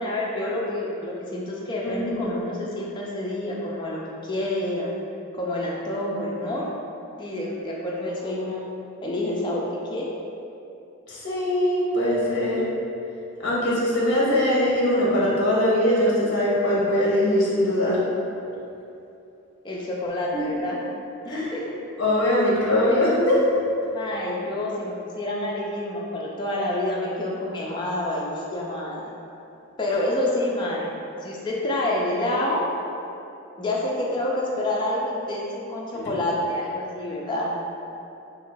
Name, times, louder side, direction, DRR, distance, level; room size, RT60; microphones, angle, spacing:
voice 1, 0.0-4.9 5.4-6.7 7.2-8.7 9.0-10.0 19.6-20.8 21.2-21.6 23.9-29.1 29.8-30.9 31.2-32.6 33.6-37.5, left 1 dB, 20° left, -4 dB, 0.3 m, -28 dB
voice 2, 1.9-2.3 11.1-12.6 13.4-18.0 20.3-20.6 21.3-21.5 22.0-23.4, left 1 dB, 50° left, -6 dB, 0.7 m, -21 dB
2.6 x 2.4 x 3.8 m, 2.8 s
head